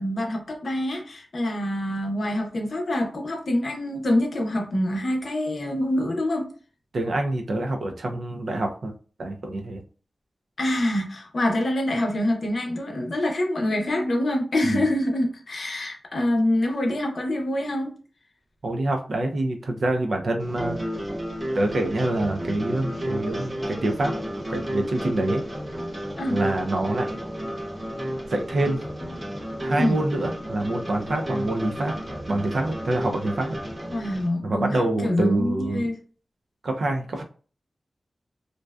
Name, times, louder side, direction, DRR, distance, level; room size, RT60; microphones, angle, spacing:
voice 1, 0.0-6.5 10.6-17.9 26.2-26.4 29.7-30.0 33.9-36.0, left 1 dB, 55° left, 0.6 m, -25 dB
voice 2, 6.9-8.9 9.2-9.8 14.6-14.8 18.6-20.8 21.5-24.1 24.5-25.4 26.3-27.2 28.3-28.8 29.6-31.9 32.3-33.6 34.4-35.9 36.6-37.2, right 2 dB, 65° right, 0.4 m, -26 dB
sound 1, 20.4-34.3, equal, 25° right, 0.7 m, -32 dB
2.5 x 2.2 x 2.3 m
wide cardioid pair, 130°, 0 cm